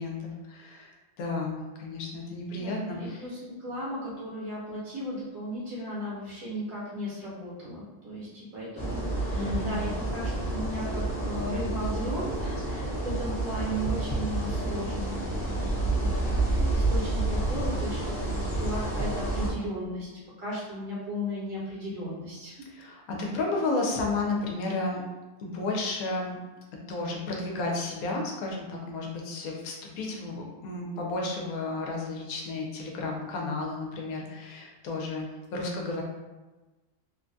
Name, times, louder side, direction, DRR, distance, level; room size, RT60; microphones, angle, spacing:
voice 1, 0.0-3.2 9.3-9.8 22.7-25.0 25.4-26.4 26.9-36.0, left 3 dB, 80° left, 0 dB, 1.1 m, -32 dB
voice 2, 2.5-15.7 16.0-20.1 20.4-22.7, equal, 75° right, -8 dB, 1.4 m, -36 dB
sound 1, 8.8-19.5, right 2 dB, 5° left, 0.6 m, -29 dB
3.1 x 2.2 x 2.5 m, 1.2 s
omnidirectional pair, 1.5 m